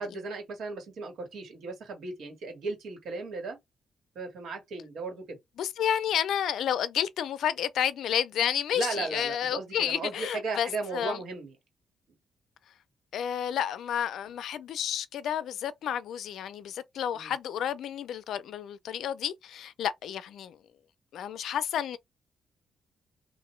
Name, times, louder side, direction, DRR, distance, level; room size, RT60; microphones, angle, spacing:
voice 1, 0.0-3.6 4.1-5.4 8.7-11.5 17.1-17.3, right 3 dB, 75° right, 1.5 m, -36 dB
voice 2, 5.6-11.2 13.1-20.6 21.1-22.0, left 9 dB, 80° left, 0.4 m, -31 dB
2.9 x 2.5 x 3.1 m
cardioid pair, 125°, 0 cm